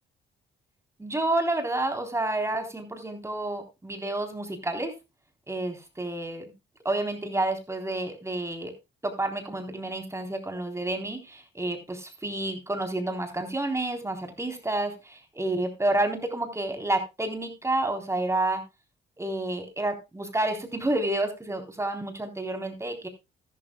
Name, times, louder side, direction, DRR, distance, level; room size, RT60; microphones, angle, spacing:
voice 1, 1.0-4.9 5.5-6.5 6.8-8.7 9.0-18.6 19.2-23.1, right 2 dB, 15° right, 4 dB, 3.8 m, -29 dB
13.5 x 12.5 x 2.4 m, 0.24 s
cardioid pair, 90°, 20 cm